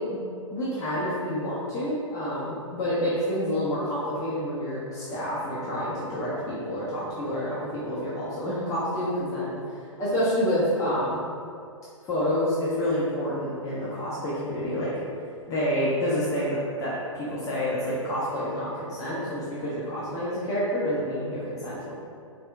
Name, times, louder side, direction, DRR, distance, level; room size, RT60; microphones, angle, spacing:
voice 1, 0.5-11.2 12.1-14.9 15.5-21.9, equal, 20° left, -9 dB, 0.5 m, -28 dB
4.2 x 2.4 x 2.2 m, 2.4 s
figure-of-eight pair, 115°, 17 cm